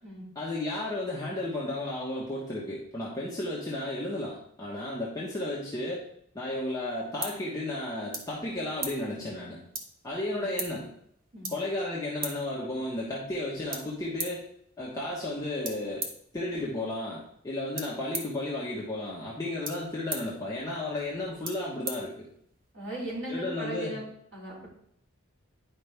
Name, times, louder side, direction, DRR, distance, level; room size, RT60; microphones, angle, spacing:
voice 1, 0.3-6.0 6.3-9.6 10.0-10.9 11.5-14.4 14.8-16.0 16.3-22.3 23.3-24.0, left 1 dB, 15° left, -6 dB, 1.3 m, -33 dB
sound 1, 6.5-22.7, right 3 dB, 40° right, 1.1 m, -42 dB
voice 2, 22.7-24.0 24.3-24.7, equal, 55° right, -5 dB, 3.4 m, -37 dB
10.0 x 5.2 x 3.5 m, 0.69 s
head